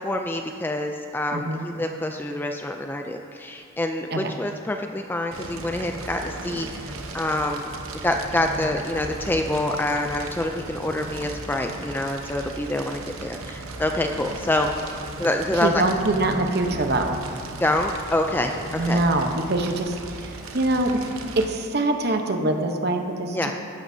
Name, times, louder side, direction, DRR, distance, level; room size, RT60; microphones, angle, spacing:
voice 1, 0.0-7.7 8.0-14.7 15.2-15.8 17.6-19.0 23.3-23.5, left 1 dB, 10° left, 4 dB, 0.3 m, -26 dB
voice 2, 1.3-1.7 4.1-4.3 15.6-17.2 18.8-19.9 20.5-21.0 21.4-23.5, right 2 dB, 50° right, 4 dB, 0.9 m, -23 dB
Fire, 5.3-21.5, right 2 dB, 80° right, 0.9 m, -36 dB
14.0 x 11.0 x 2.7 m, 2.9 s
head